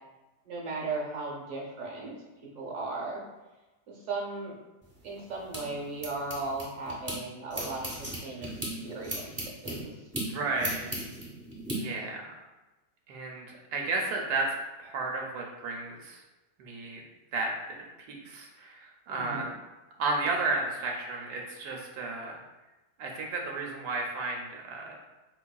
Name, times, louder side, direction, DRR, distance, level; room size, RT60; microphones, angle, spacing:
voice 1, 0.4-2.1 2.5-3.2 3.9-4.5 5.0-8.5 8.8-9.3 9.6-9.9 19.1-19.5, right 3 dB, 60° right, -2 dB, 1.1 m, -36 dB
sound 1, 4.8-7.2 7.5-11.8, right 1 dB, 20° right, 0.7 m, -37 dB
voice 2, 10.3-11.0 11.7-12.3 13.1-13.5 13.7-14.5 14.8-16.2 16.6-17.0 17.3-17.8 18.1-19.5 20.0-22.4 23.0-25.0, right 3 dB, 80° right, 0 dB, 1.1 m, -33 dB
4.6 x 2.8 x 2.2 m, 1.1 s
omnidirectional pair, 1.7 m